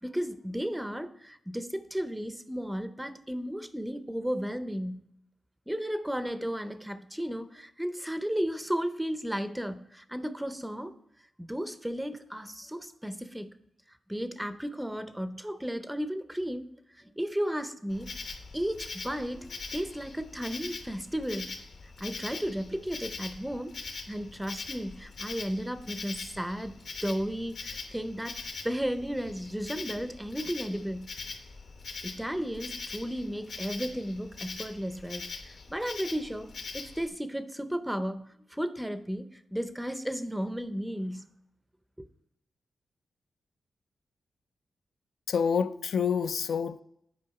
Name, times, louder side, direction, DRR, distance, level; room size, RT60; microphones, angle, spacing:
voice 1, 0.0-5.1 5.7-10.9 11.4-13.5 13.9-16.7 17.0-18.1 18.5-21.6 22.0-23.8 24.1-26.8 27.0-28.4 28.6-31.1 32.0-41.3 42.0-42.1, equal, 5° right, 0.5 m, -34 dB
Insect, 17.9-37.1, left 4 dB, 60° left, 1.0 m, -42 dB
voice 2, 45.3-46.8, left 6 dB, 80° left, 0.3 m, -27 dB
8.5 x 4.9 x 4.7 m
wide cardioid pair, 130°, 0 cm